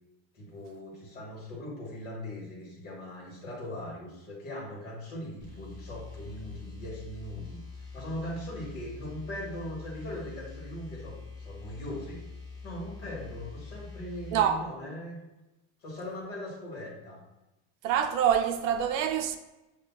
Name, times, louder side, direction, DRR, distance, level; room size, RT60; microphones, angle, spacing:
voice 1, 0.3-7.6 7.9-12.2 12.6-15.2 15.8-17.2, left 1 dB, 25° left, 1.1 m, -40 dB
sound 1, 5.4-14.5, left 4 dB, 10° right, 1.3 m, -45 dB
voice 2, 14.3-14.6 17.8-19.4, right 9 dB, 85° right, 0.5 m, -26 dB
7.0 x 2.4 x 2.2 m
cardioid pair, 180°, 39 cm